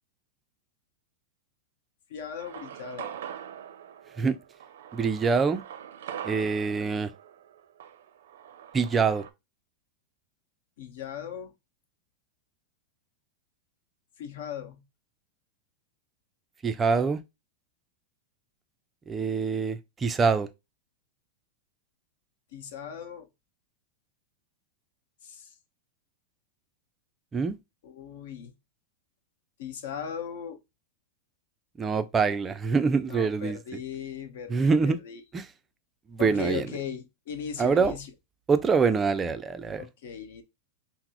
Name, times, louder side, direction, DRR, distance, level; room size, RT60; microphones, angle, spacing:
voice 1, 2.1-3.2 10.8-11.5 14.2-14.8 22.5-23.3 25.2-25.5 27.8-28.5 29.6-30.6 33.1-35.2 36.2-38.1 39.8-40.4, left 7 dB, 65° left, 0.9 m, -38 dB
sound 1, 2.4-9.3, right 9 dB, 80° right, 0.5 m, -43 dB
voice 2, 4.9-5.6 6.2-7.1 8.7-9.3 16.6-17.2 19.1-20.5 27.3-27.6 31.8-33.6 34.5-35.0 35.3-35.5 36.1-36.7 37.6-38.0 38.5-39.8, right 5 dB, 15° right, 0.3 m, -25 dB
5.8 x 2.0 x 2.9 m
supercardioid pair, 165°, 0 cm